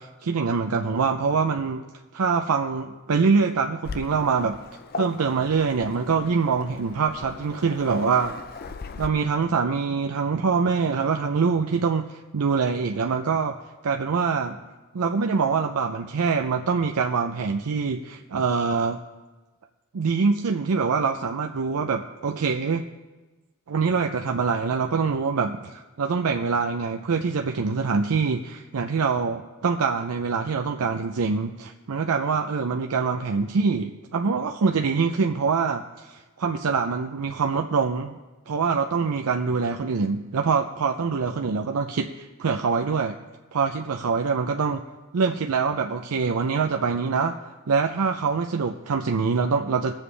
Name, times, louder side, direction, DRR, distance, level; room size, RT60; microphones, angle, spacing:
voice 1, 0.2-1.8 2.1-4.6 4.9-8.3 9.0-13.6 13.8-14.6 14.9-19.0 19.9-22.8 23.7-38.2 38.5-43.2 43.5-44.8 45.1-49.9, right 5 dB, 90° right, 4 dB, 0.5 m, -24 dB
Waves surf, 3.8-9.1, left 4 dB, 45° left, 0.5 m, -38 dB
21.0 x 7.3 x 3.3 m, 1.2 s
head